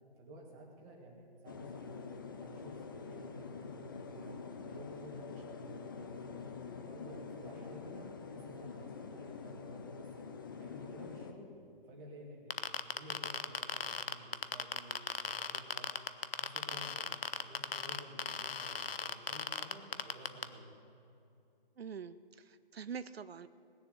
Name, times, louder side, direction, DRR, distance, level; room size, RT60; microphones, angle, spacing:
voice 1, 0.2-2.1 2.4-4.4 4.6-6.5 6.8-10.3 10.6-11.5 11.9-14.9 15.2-16.0 16.4-20.7, equal, 15° right, -1 dB, 1.9 m, -52 dB
sound 1, 1.5-11.3, left 5 dB, 20° left, 0.6 m, -46 dB
sound 2, 12.5-20.4, left 6 dB, 75° left, 0.9 m, -36 dB
voice 2, 21.8-23.5, right 6 dB, 85° right, 14 dB, 0.6 m, -45 dB
19.5 x 7.2 x 8.0 m, 2.7 s
figure-of-eight pair, 155°, 30 cm